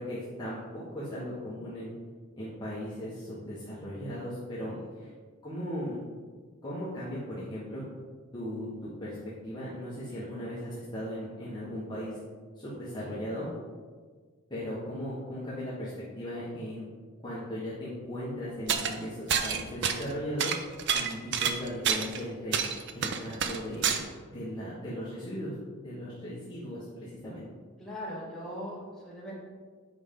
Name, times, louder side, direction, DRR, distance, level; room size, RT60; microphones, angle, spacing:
voice 1, 0.0-1.9 2.4-5.1 5.4-6.0 6.6-7.8 8.3-9.2 9.4-12.2 12.6-13.5 14.5-16.8 17.2-20.5 20.9-22.6 22.9-24.0 24.3-25.5 25.8-27.4, equal, 20° left, -9 dB, 1.3 m, -37 dB
sound 1, 18.7-18.9 19.3-20.1 20.4-22.2 22.5-24.0, right 7 dB, 55° right, 0.5 m, -28 dB
voice 2, 27.8-29.3, equal, ahead, -8 dB, 2.0 m, -40 dB
8.0 x 5.1 x 3.8 m, 1.5 s
head